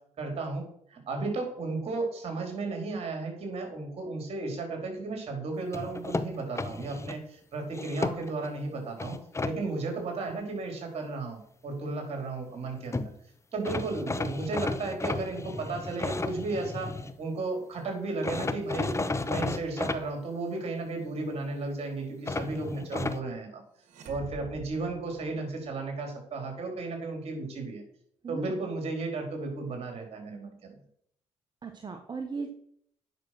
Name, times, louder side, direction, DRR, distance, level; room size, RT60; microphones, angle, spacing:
voice 1, 0.2-0.6 0.9-9.2 9.4-13.1 13.5-18.9 19.2-23.6 24.1-27.8 28.3-30.7, right 3 dB, 55° right, 3 dB, 4.5 m, -34 dB
sound 1, 5.7-7.2 7.7-8.5 9.0-9.5 12.6-12.7 12.9-13.1 13.6-17.1 18.2-20.0 22.3-23.2, left 3 dB, 20° left, 0.9 m, -33 dB
sound 2, 23.8-25.8, right 4 dB, 70° right, 1.8 m, -46 dB
voice 2, 31.6-32.5, right 4 dB, 35° right, 5 dB, 1.4 m, -36 dB
9.4 x 6.3 x 6.2 m, 0.67 s
supercardioid pair, 60°, 12 cm